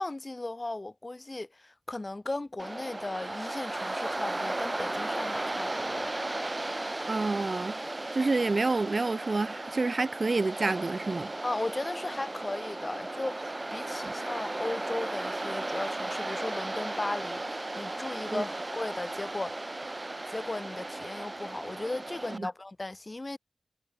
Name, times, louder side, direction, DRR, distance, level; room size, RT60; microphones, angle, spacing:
voice 1, 0.0-6.1 11.4-19.7 20.3-23.4, left 2 dB, 35° left, 5.6 m, -36 dB
Waves surf, 2.6-22.4, right 2 dB, 30° right, 1.4 m, -35 dB
voice 2, 7.1-7.8 8.1-11.3 14.0-14.1 18.3-18.4 22.3-22.5, right 3 dB, 50° right, 0.4 m, -28 dB
cardioid pair, 55°, 0 cm